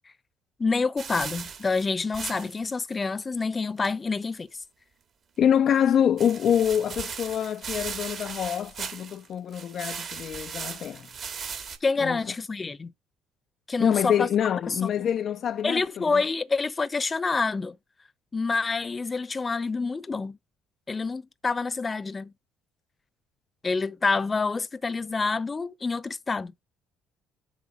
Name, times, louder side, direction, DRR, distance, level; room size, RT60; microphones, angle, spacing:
voice 1, 0.6-4.5 11.8-12.9 13.7-14.3 14.7-14.9 15.6-17.8 18.3-20.4 20.9-22.3 23.6-26.5, left 4 dB, 30° left, 0.8 m, -27 dB
sound 1, 1.0-2.7 2.9-3.0 3.4-3.5 3.8-3.9 6.2-9.3 9.5-11.8, right 6 dB, 50° right, 1.9 m, -37 dB
voice 2, 5.4-11.1 12.0-12.2 13.8-16.2, left 9 dB, 55° left, 0.4 m, -25 dB
7.3 x 3.8 x 5.4 m
hypercardioid pair, 60°, 0 cm